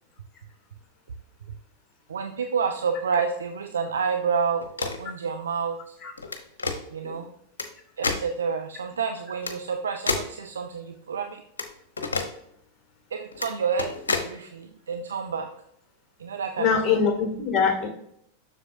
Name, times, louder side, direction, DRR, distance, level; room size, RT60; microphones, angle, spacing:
voice 1, 2.1-6.0 6.9-7.3 8.0-11.4 13.1-15.5 16.2-16.8, right 6 dB, 70° right, 5 dB, 0.5 m, -29 dB
sound 1, 4.6-5.1 6.2-6.8 7.6-7.7 8.0-8.2 9.4-9.5 10.1-10.3 11.6-11.7 12.0-12.3 13.3-13.5 13.8-14.3, left 4 dB, 70° left, 0.9 m, -28 dB
voice 2, 16.6-17.9, left 6 dB, 25° left, 2 dB, 2.2 m, -23 dB
7.4 x 6.3 x 2.6 m, 0.72 s
figure-of-eight pair, 90°, 0 cm